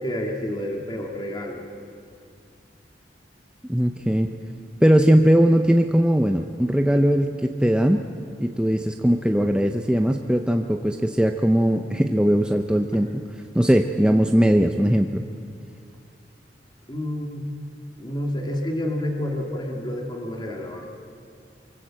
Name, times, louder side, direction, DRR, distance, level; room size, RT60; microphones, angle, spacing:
voice 1, 0.0-1.6 16.9-17.5 18.0-20.9, left 1 dB, 25° left, 1 dB, 2.4 m, -29 dB
voice 2, 3.7-4.3 4.8-8.0 8.4-13.2 13.5-15.2, equal, 5° right, 4 dB, 0.7 m, -19 dB
24.0 x 24.0 x 7.7 m, 2.4 s
head